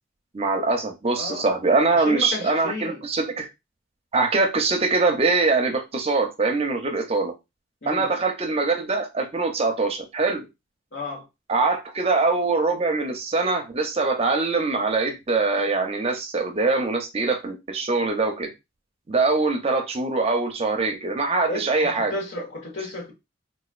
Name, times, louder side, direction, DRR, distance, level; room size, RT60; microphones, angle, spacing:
voice 1, 0.3-3.5 4.1-7.3 7.9-10.5 11.5-18.5 19.1-22.1, right 3 dB, 30° right, 0.5 m, -23 dB
voice 2, 1.2-1.5 1.9-3.0 7.8-8.1 10.9-11.3 21.4-23.1, left 2 dB, 70° left, 1.3 m, -33 dB
4.0 x 2.4 x 2.4 m
head